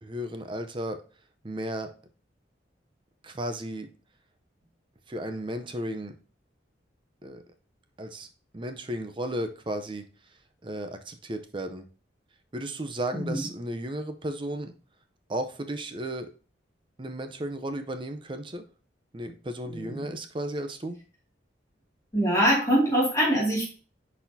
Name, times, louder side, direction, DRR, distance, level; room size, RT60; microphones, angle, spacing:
voice 1, 0.0-1.0 1.4-1.9 3.2-3.9 5.1-6.2 7.2-7.4 8.0-8.3 8.5-10.1 10.6-11.9 12.5-14.7 15.3-16.3 17.0-18.7 19.1-21.0, right 1 dB, 25° right, 8 dB, 0.6 m, -34 dB
voice 2, 13.1-13.5 19.7-20.0 22.1-23.6, equal, 15° left, -5 dB, 2.3 m, -24 dB
10.0 x 4.2 x 2.7 m, 0.37 s
head